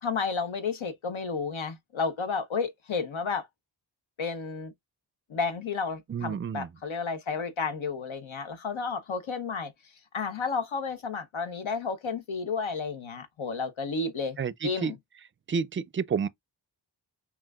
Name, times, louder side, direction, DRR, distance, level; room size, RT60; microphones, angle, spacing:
voice 1, 0.0-3.5 4.2-4.7 5.3-9.7 10.1-14.4 14.6-15.0, left 5 dB, 90° left, 0.9 m, -32 dB
voice 2, 6.1-6.7 14.4-14.9 15.5-16.3, right 6 dB, 30° right, 0.4 m, -30 dB
5.8 x 2.5 x 2.3 m
cardioid pair, 50°, 46 cm